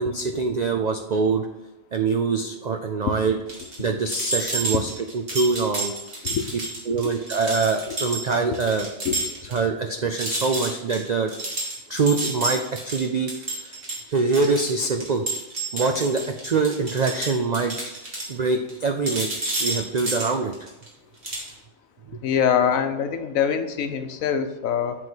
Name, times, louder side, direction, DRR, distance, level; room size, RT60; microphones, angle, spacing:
voice 1, 0.0-1.5 1.9-3.4 3.8-6.0 6.9-8.9 9.5-11.3 11.9-13.8 14.1-15.3 15.7-17.8 18.3-19.3 19.6-20.5 22.1-22.2, right 4 dB, 70° right, 5 dB, 0.4 m, -24 dB
sound 1, 3.5-9.6 9.9-10.0 10.2-18.8 19.0-20.9 21.2-21.5, right 2 dB, 45° right, 2.1 m, -30 dB
voice 2, 22.2-25.0, left 8 dB, 75° left, 8 dB, 1.1 m, -24 dB
7.8 x 3.8 x 6.0 m, 1.0 s
omnidirectional pair, 1.4 m